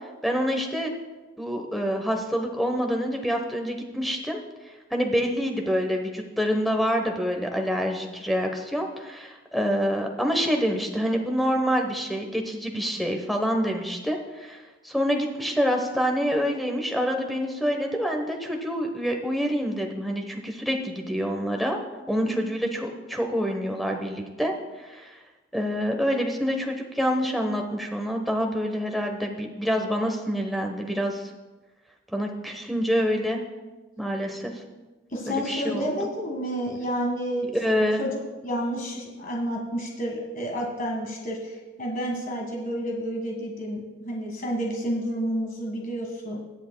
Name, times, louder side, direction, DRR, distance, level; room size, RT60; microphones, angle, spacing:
voice 1, 0.2-0.9 1.4-4.4 4.9-21.8 22.1-25.2 25.5-31.3 32.1-33.4 34.0-34.5 35.3-35.9 37.5-38.0, equal, ahead, 3 dB, 1.0 m, -27 dB
voice 2, 35.1-37.5 37.7-38.1 38.4-46.4, equal, 40° left, -1 dB, 1.7 m, -30 dB
22.0 x 7.9 x 2.3 m, 1.2 s
head